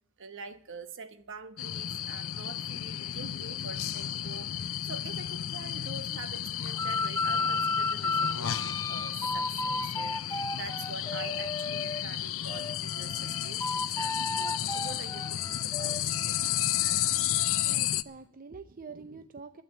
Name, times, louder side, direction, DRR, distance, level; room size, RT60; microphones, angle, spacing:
voice 1, 0.2-16.5, right 4 dB, 55° right, 1.2 m, -45 dB
sound 1, 1.6-18.0, left 11 dB, 65° left, 0.6 m, -32 dB
Explosion, 3.7-5.3, left 1 dB, ahead, 8.0 m, -58 dB
sound 2, 6.8-12.0 12.5-17.8, left 3 dB, 15° left, 0.5 m, -34 dB
voice 2, 17.6-19.6, right 4 dB, 40° right, 0.6 m, -46 dB
12.0 x 9.2 x 9.3 m
head